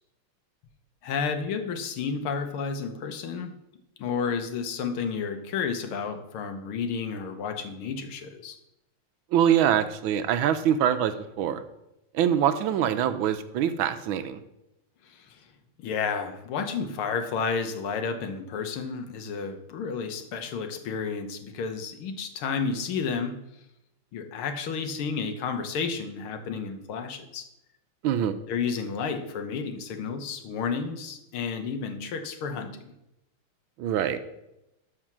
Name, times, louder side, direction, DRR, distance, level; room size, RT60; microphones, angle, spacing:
voice 1, 1.0-3.5 4.0-8.6 15.1-15.5 15.8-23.4 24.1-27.5 28.5-32.8, left 5 dB, 80° left, 7 dB, 1.8 m, -31 dB
voice 2, 9.3-11.6 12.1-14.4 28.0-28.3 33.8-34.2, right 9 dB, 75° right, 11 dB, 1.4 m, -24 dB
12.5 x 4.4 x 6.0 m, 0.88 s
omnidirectional pair, 2.4 m